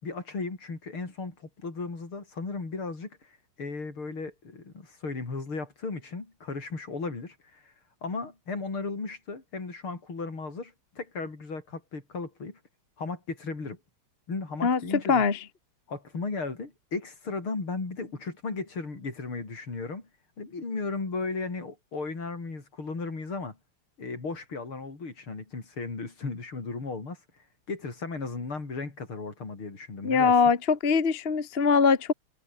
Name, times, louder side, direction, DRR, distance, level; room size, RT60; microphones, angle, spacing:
voice 1, 0.0-7.7 8.0-12.6 13.0-13.8 14.3-15.2 15.9-20.1 20.4-23.6 24.0-27.2 27.7-30.3, left 3 dB, 80° left, 5.9 m, -35 dB
voice 2, 15.1-15.4 30.0-32.1, left 5 dB, 30° left, 1.6 m, -22 dB
omnidirectional pair, 2.3 m